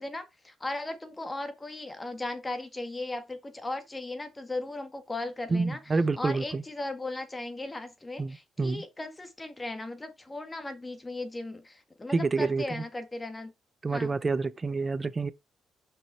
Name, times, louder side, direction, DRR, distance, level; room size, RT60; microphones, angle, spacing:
voice 1, 0.0-13.5 13.9-14.1, left 2 dB, 20° left, 1.7 m, -37 dB
voice 2, 5.5-6.6 8.2-8.8 12.1-12.8 13.8-15.3, right 3 dB, 30° right, 0.7 m, -28 dB
5.8 x 5.3 x 4.5 m
cardioid pair, 90°, 0 cm